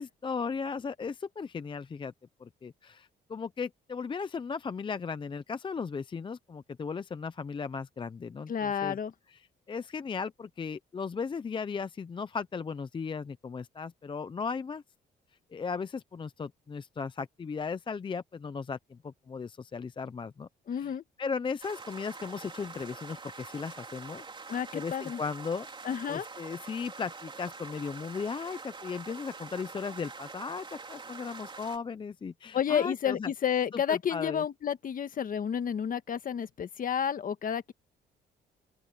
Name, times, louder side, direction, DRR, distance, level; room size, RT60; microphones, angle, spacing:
voice 1, 0.0-2.1 2.4-9.0 9.3-9.4 9.7-14.8 15.5-25.7 26.1-33.3 33.7-34.4, left 5 dB, 25° left, 0.6 m, -36 dB
voice 2, 8.5-9.1 20.7-21.0 24.5-25.2 25.8-26.2 32.5-37.7, left 8 dB, 50° left, 1.6 m, -31 dB
sound 1, 21.6-31.8, right 4 dB, 25° right, 3.8 m, -45 dB
open air
cardioid pair, 110°, 18 cm